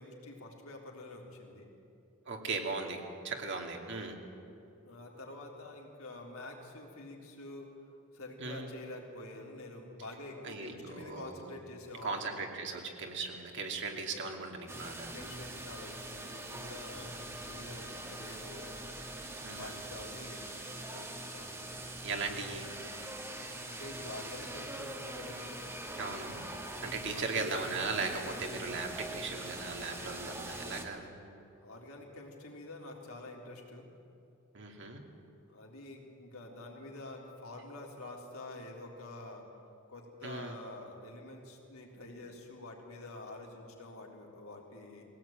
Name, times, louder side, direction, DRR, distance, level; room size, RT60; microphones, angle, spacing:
voice 1, 0.0-1.7 4.8-12.3 14.1-14.3 15.1-18.8 19.6-21.8 23.6-25.6 27.1-27.5 31.6-33.9 35.5-39.5 39.9-45.1, left 2 dB, 75° left, -1 dB, 3.8 m, -47 dB
voice 2, 2.3-4.2 8.4-8.7 10.4-11.5 12.0-15.1 17.8-17.9 19.4-19.8 22.0-22.7 26.0-26.4 26.8-31.2 34.5-35.0 40.2-40.5, right 4 dB, 55° right, 2 dB, 2.6 m, -38 dB
sound 1, 14.7-30.9, right 1 dB, 10° right, 1.7 m, -43 dB
21.0 x 17.0 x 9.0 m, 2.7 s
head